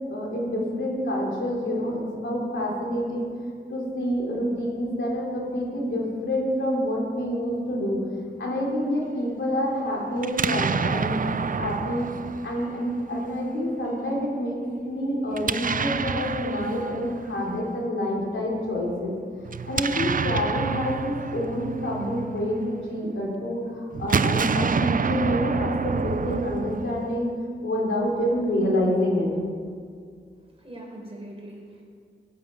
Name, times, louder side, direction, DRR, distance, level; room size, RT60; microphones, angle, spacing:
voice 1, 0.1-3.3 3.7-8.0 8.4-12.1 12.4-14.6 14.8-19.2 19.6-27.3 27.6-29.3, equal, 75° left, -3 dB, 3.8 m, -27 dB
Explosion, 10.2-13.2 15.3-17.6 19.4-22.9 23.9-27.3, right 5 dB, 45° right, 0.5 m, -28 dB
voice 2, 30.4-31.8, right 1 dB, 30° right, -2 dB, 4.1 m, -42 dB
15.5 x 9.8 x 5.5 m, 2.2 s
wide cardioid pair, 70°, 20 cm